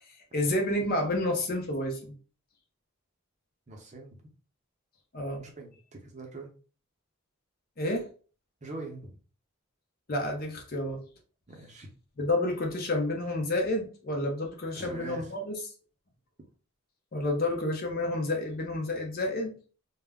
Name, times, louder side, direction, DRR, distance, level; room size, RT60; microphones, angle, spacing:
voice 1, 0.3-2.0 5.1-5.4 7.8-8.1 10.1-11.0 12.2-15.5 17.1-19.5, left 1 dB, 45° left, 1 dB, 0.7 m, -29 dB
voice 2, 3.7-4.1 5.4-6.5 8.6-9.2 11.5-11.9 14.7-15.3, right 2 dB, 35° right, 1 dB, 0.6 m, -43 dB
2.2 x 2.1 x 3.5 m, 0.38 s
head